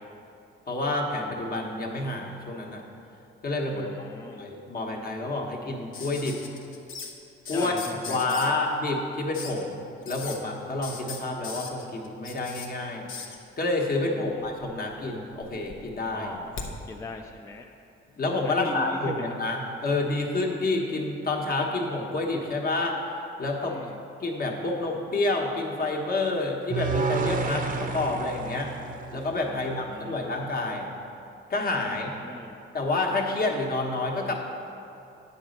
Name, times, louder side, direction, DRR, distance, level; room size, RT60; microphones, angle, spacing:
voice 1, 0.7-2.8 3.4-3.9 4.4-6.4 7.5-7.7 8.1-13.1 13.6-16.3 18.2-23.0 23.4-23.9 24.2-28.7 29.1-30.9 31.5-32.1 32.7-34.3, left 2 dB, 45° left, 0 dB, 1.1 m, -28 dB
voice 2, 3.6-4.4 7.5-8.6 14.0-14.5 16.1-16.6 16.9-17.7 18.4-19.2 23.6-24.0 29.5-30.4 31.8-32.6, left 3 dB, 15° left, 2 dB, 0.3 m, -40 dB
sound 1, 5.9-7.1 7.4-8.5 9.3-9.6 10.0-10.4 10.8-12.7 13.1-13.4 14.4-15.0 15.3-16.7 18.1-18.2, left 5 dB, 80° left, 0.8 m, -39 dB
sound 2, 26.7-29.9, right 4 dB, 45° right, 0.6 m, -30 dB
9.1 x 4.1 x 6.4 m, 2.8 s
cardioid pair, 120°, 21 cm